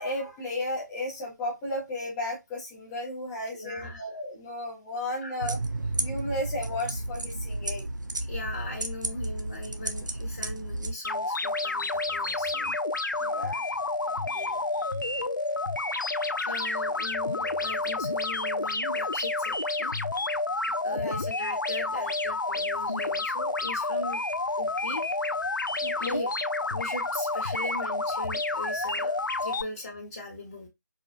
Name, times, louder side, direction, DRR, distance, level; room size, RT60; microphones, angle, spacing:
voice 1, 0.0-5.6 6.0-7.9 12.5-12.7 13.2-13.6 14.3-15.1 20.9-21.2 25.8-26.2, left 1 dB, 5° left, -2 dB, 0.3 m, -34 dB
voice 2, 3.5-4.0 5.2-5.5 8.3-12.7 16.4-19.9 20.8-24.2 24.6-25.1 26.0-26.3 26.7-30.7, left 2 dB, 40° left, -2 dB, 1.2 m, -39 dB
sound 1, 5.4-10.9, right 2 dB, 75° right, 0.7 m, -32 dB
sound 2, 11.0-29.6, left 2 dB, 90° left, 0.5 m, -29 dB
4.7 x 2.1 x 2.5 m, 0.20 s
figure-of-eight pair, 160°, 10 cm